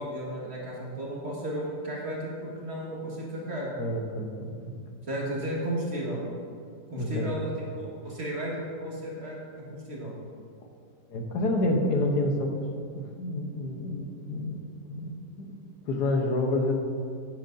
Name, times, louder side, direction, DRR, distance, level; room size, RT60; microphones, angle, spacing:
voice 1, 0.0-3.7 5.1-6.2 6.9-8.5 8.8-9.4 9.7-10.1, right 1 dB, 40° right, -4 dB, 1.9 m, -34 dB
voice 2, 3.8-4.8 7.0-7.3 11.1-12.5 13.0-14.6 14.9-15.1 15.4-15.5 15.9-16.7, left 1 dB, 80° left, 3 dB, 1.5 m, -28 dB
10.5 x 9.3 x 2.6 m, 2.3 s
omnidirectional pair, 1.7 m